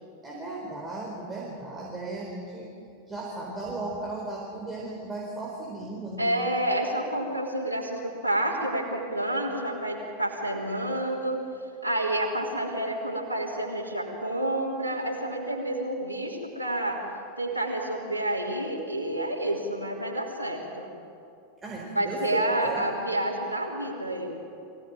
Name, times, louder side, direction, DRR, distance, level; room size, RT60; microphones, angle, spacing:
voice 1, 0.2-2.7 3.1-6.3 21.6-22.8, right 2 dB, 15° right, -3 dB, 4.4 m, -36 dB
voice 2, 6.2-11.4 11.8-17.0 17.4-20.9 21.9-24.4, right 1 dB, 85° left, -2 dB, 3.3 m, -29 dB
24.0 x 17.0 x 9.1 m, 2.6 s
figure-of-eight pair, 90°, 0 cm